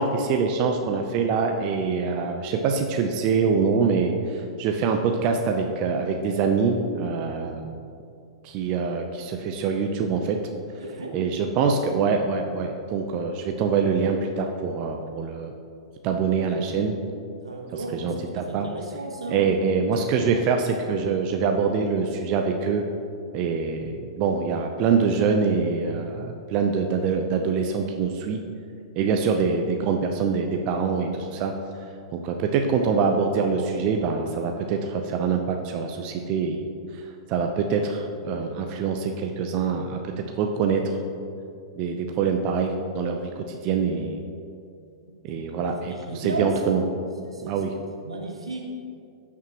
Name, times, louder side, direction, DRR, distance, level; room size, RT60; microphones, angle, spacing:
voice 1, 0.0-7.6 8.4-10.4 11.1-15.5 16.0-17.0 17.7-18.7 19.3-22.9 23.3-28.4 29.0-31.6 32.1-36.7 36.9-37.0 37.3-40.9 41.8-44.2 45.2-46.8 47.4-47.8, right 5 dB, 40° right, 4 dB, 0.7 m, -25 dB
voice 2, 10.8-11.2 17.4-19.4 20.3-20.4 45.1-45.4 45.9-46.8 47.3-47.6 48.0-48.6, right 2 dB, 80° right, 2 dB, 1.3 m, -34 dB
15.0 x 6.0 x 3.0 m, 2.4 s
figure-of-eight pair, 105°, 3 cm